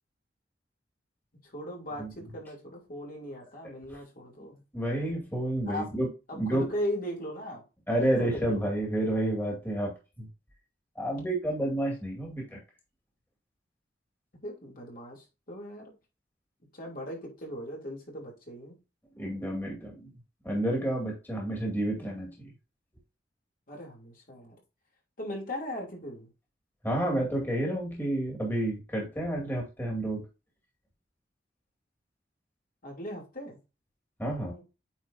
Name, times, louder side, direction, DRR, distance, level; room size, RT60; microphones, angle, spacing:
voice 1, 1.4-4.6 5.7-5.9 6.3-7.6 8.0-8.7 14.4-15.9 16.7-18.8 23.7-24.5 25.2-26.3 32.8-33.6 34.3-34.6, equal, 55° left, -1 dB, 2.9 m, -38 dB
voice 2, 4.7-6.1 6.3-6.6 7.9-10.3 11.0-12.6 19.1-20.1 20.4-22.5 26.8-30.2 34.2-34.5, right 1 dB, 10° left, -2 dB, 2.2 m, -30 dB
9.0 x 4.4 x 2.6 m, 0.29 s
head